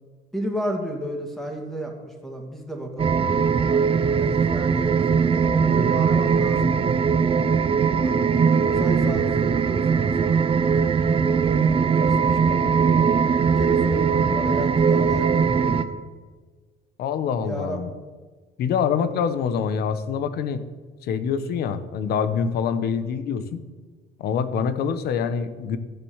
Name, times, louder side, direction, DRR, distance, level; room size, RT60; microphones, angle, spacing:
voice 1, 0.3-3.8 4.2-7.0 7.8-10.4 11.2-15.9 17.4-17.8, equal, ahead, 2 dB, 2.6 m, -33 dB
sound 1, 3.0-15.8, right 6 dB, 35° right, 0.8 m, -20 dB
voice 2, 17.0-17.9 18.6-20.6 21.0-23.6 24.2-25.8, left 7 dB, 70° left, 12 dB, 1.0 m, -25 dB
13.5 x 7.3 x 7.2 m, 1.4 s
cardioid pair, 110°, 17 cm